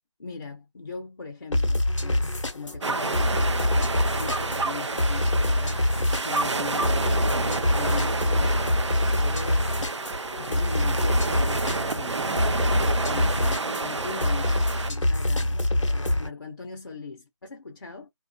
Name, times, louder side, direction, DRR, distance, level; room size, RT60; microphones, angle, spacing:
voice 1, 0.2-3.9 4.2-8.7 9.1-9.8 10.4-15.7 15.9-18.1, left 4 dB, 45° left, 0.5 m, -40 dB
sound 1, 1.5-16.3, left 1 dB, 85° left, 0.7 m, -25 dB
sound 2, 2.8-14.9, right 3 dB, 70° right, 0.5 m, -29 dB
2.4 x 2.4 x 2.2 m
figure-of-eight pair, 155°, 15 cm